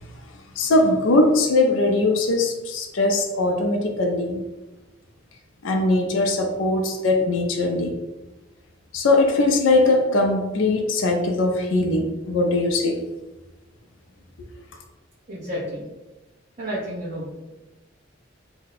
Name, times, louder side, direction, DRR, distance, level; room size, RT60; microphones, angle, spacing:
voice 1, 0.6-4.4 5.6-7.9 8.9-13.0, left 2 dB, 80° left, 3 dB, 0.4 m, -20 dB
voice 2, 15.3-15.9 16.6-17.3, equal, 40° right, -10 dB, 0.8 m, -30 dB
2.6 x 2.1 x 4.0 m, 1.1 s
head